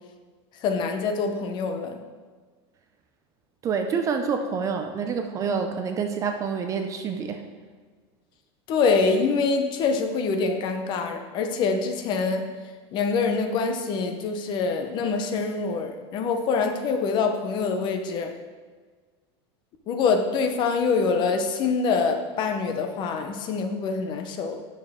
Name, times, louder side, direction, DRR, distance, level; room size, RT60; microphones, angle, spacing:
voice 1, 0.6-2.0 8.7-12.5 12.9-18.3 19.9-24.6, left 4 dB, 35° left, 6 dB, 0.8 m, -25 dB
voice 2, 3.6-7.5, right 6 dB, 20° right, 6 dB, 0.5 m, -27 dB
9.0 x 6.7 x 3.6 m, 1.5 s
supercardioid pair, 160°, 14 cm